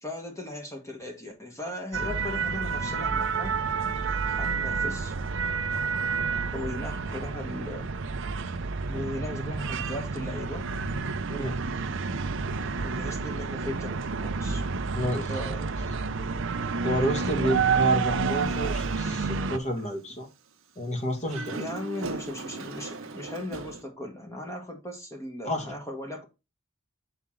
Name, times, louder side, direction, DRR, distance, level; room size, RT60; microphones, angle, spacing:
voice 1, 0.0-3.5 4.2-5.2 6.5-7.9 8.9-10.7 12.8-14.7 15.1-15.6 21.5-26.2, left 1 dB, 15° left, 1.3 m, -37 dB
sound 1, 1.9-19.6, right 5 dB, 70° right, 0.7 m, -29 dB
voice 2, 16.8-20.3 20.8-21.6 25.4-25.7, equal, 35° left, 1.8 m, -30 dB
Dog, 18.3-19.4 19.8-19.9 21.1-23.8, right 3 dB, 85° right, 1.0 m, -39 dB
6.9 x 4.4 x 3.6 m
head